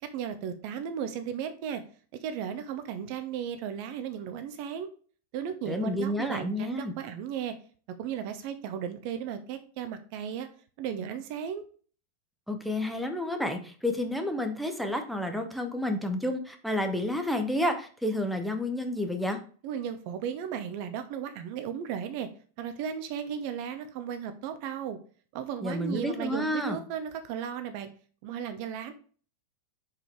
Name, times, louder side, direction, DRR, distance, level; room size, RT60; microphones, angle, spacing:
voice 1, 0.0-1.8 2.2-4.9 5.3-7.6 8.0-10.5 10.8-11.6 19.6-22.3 22.6-25.0 25.3-27.9 28.2-28.9, right 8 dB, 45° right, 9 dB, 0.7 m, -35 dB
voice 2, 5.7-6.9 12.5-19.4 25.6-26.8, left 1 dB, ahead, 5 dB, 0.9 m, -30 dB
5.1 x 4.8 x 4.6 m, 0.41 s
figure-of-eight pair, 90°, 0 cm